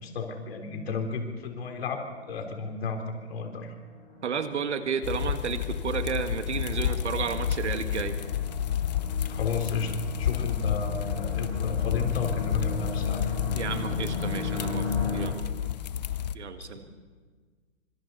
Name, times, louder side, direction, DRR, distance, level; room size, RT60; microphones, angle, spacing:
voice 1, 0.0-2.0 2.3-3.7 9.3-9.9 10.2-13.2 16.6-16.7, left 5 dB, 55° left, 4 dB, 3.8 m, -33 dB
sound 1, 2.3-15.2, left 4 dB, 15° left, 6.9 m, -37 dB
voice 2, 4.2-8.2 13.6-14.9 15.1-15.3 16.3-16.9, right 6 dB, 65° right, 8 dB, 2.0 m, -32 dB
sound 2, 5.0-16.4, left 10 dB, 35° left, 0.6 m, -30 dB
26.5 x 25.0 x 4.2 m, 1.5 s
hypercardioid pair, 145°, 36 cm